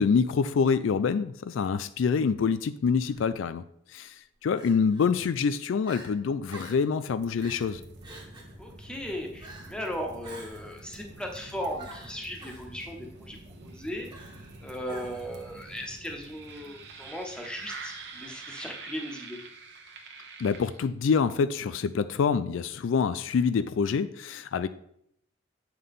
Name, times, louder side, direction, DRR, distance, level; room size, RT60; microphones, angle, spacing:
voice 1, 0.0-3.6 3.9-4.2 4.4-7.8 20.4-24.7, left 5 dB, 75° left, 13 dB, 0.4 m, -26 dB
Crying sobbing, 3.0-3.3 4.6-5.1 5.5-5.6 5.8-6.1 6.5-6.9 7.4-7.7 8.0-8.6 9.4-9.8 10.2-10.8 11.8-12.7 14.1-14.5 14.9-15.4, right 2 dB, 25° right, 1.2 m, -46 dB
sound 1, 7.2-21.1, right 3 dB, 60° right, 1.0 m, -46 dB
voice 2, 8.6-13.4 13.6-14.1 14.6-19.4, equal, 5° left, 1 dB, 1.0 m, -37 dB
8.2 x 5.7 x 3.6 m, 0.72 s
head